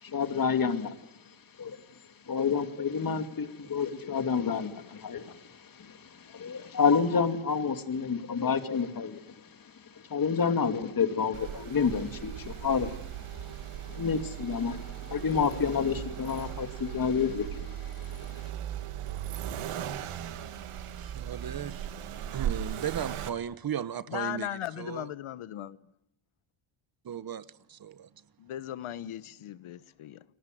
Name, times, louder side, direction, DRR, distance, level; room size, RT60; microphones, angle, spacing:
voice 1, 0.0-1.0 1.6-1.8 2.3-13.5 13.8-18.5, left 6 dB, 40° left, 2.6 m, -29 dB
Accelerating revving vroom, 11.3-23.3, right 10 dB, 85° right, 2.2 m, -38 dB
voice 2, 21.0-21.9 22.3-24.5 24.8-25.1 27.0-28.1, right 9 dB, 45° right, 1.0 m, -36 dB
voice 3, 24.1-25.8 28.4-30.2, left 12 dB, 75° left, 1.2 m, -37 dB
30.0 x 20.5 x 9.3 m
cardioid pair, 110°, 50 cm